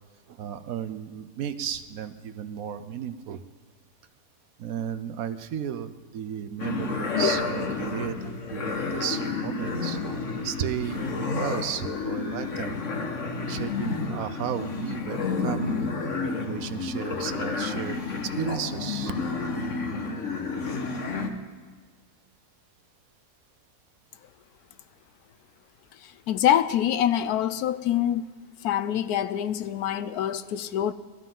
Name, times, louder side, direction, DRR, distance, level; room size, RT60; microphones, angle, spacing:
voice 1, 0.3-3.4 4.6-10.0 10.4-12.8 13.5-15.8 16.4-19.1, right 9 dB, 70° right, 11 dB, 1.0 m, -34 dB
sound 1, 6.6-21.3, left 4 dB, 55° left, 1.5 m, -30 dB
voice 2, 26.0-28.3 28.6-30.9, left 10 dB, 75° left, 13 dB, 1.1 m, -25 dB
20.5 x 13.5 x 3.8 m, 1.5 s
omnidirectional pair, 1.7 m